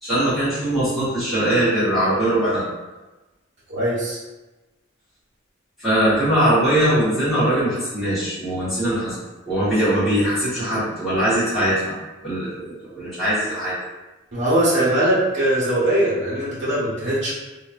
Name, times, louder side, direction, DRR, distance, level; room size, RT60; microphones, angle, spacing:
voice 1, 0.0-2.6 5.8-9.2 9.4-11.9 12.2-13.7, right 1 dB, ahead, -16 dB, 1.4 m, -21 dB
voice 2, 3.7-4.2 14.3-17.3, right 1 dB, 60° right, -8 dB, 1.4 m, -21 dB
2.9 x 2.9 x 2.5 m, 1.1 s
head